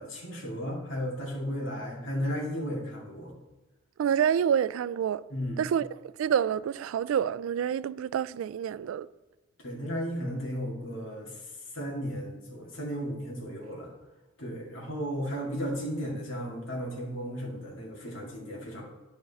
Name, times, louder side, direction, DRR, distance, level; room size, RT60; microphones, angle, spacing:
voice 1, 0.0-3.3 5.3-5.7 9.6-13.9 14.4-18.8, equal, 75° left, 2.2 m, -35 dB
voice 2, 4.0-5.2 5.6-9.1, right 8 dB, 90° right, 0.3 m, -28 dB
10.5 x 5.2 x 4.1 m
head